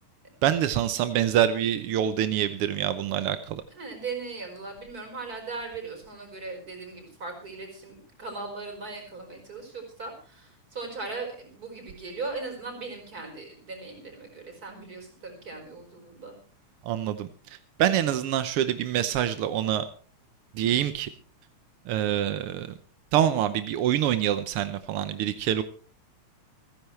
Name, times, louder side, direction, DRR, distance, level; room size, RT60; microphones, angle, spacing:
voice 1, 0.4-3.6 16.8-19.9 20.5-21.1 21.9-22.7 23.1-25.6, right 11 dB, 75° right, 11 dB, 1.3 m, -26 dB
voice 2, 3.7-16.3, right 3 dB, 30° right, 3 dB, 5.2 m, -38 dB
28.5 x 10.5 x 3.2 m, 0.39 s
omnidirectional pair, 3.5 m